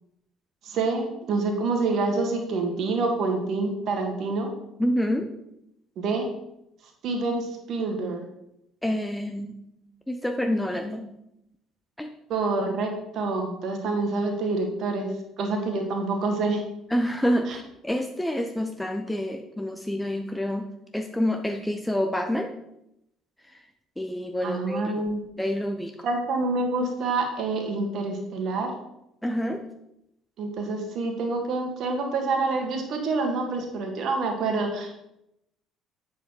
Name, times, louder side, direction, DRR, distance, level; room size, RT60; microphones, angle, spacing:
voice 1, 0.6-4.5 6.0-6.3 7.0-8.3 12.3-15.1 15.4-16.6 17.5-17.6 24.4-25.2 26.0-28.7 30.4-35.1, right 3 dB, 55° right, 3 dB, 1.8 m, -27 dB
voice 2, 4.8-5.3 8.8-9.6 10.1-11.1 12.0-12.1 16.9-22.5 24.0-25.0 25.4-26.0 29.2-29.6, equal, 5° left, 5 dB, 0.8 m, -27 dB
8.0 x 6.9 x 4.6 m, 0.82 s
figure-of-eight pair, 55°, 0 cm